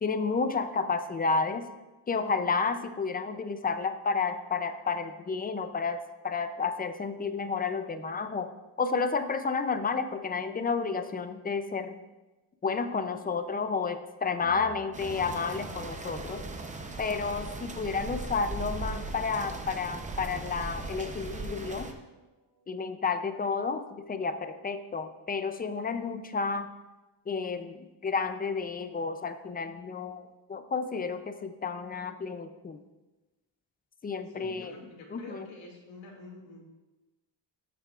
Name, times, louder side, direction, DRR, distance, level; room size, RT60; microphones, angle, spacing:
voice 1, 0.0-1.7 2.1-8.5 8.8-12.0 12.6-16.5 17.0-21.9 22.7-26.7 27.3-32.8 34.0-34.7 35.1-35.5, left 4 dB, 20° left, 10 dB, 0.4 m, -31 dB
sound 1, 14.4-24.0, right 1 dB, 45° right, 2.9 m, -53 dB
sound 2, 14.9-21.9, right 2 dB, 15° right, 0.6 m, -38 dB
voice 2, 34.3-36.7, left 2 dB, 80° left, -1 dB, 2.3 m, -47 dB
13.0 x 8.4 x 2.4 m, 1.1 s
wide cardioid pair, 160°, 44 cm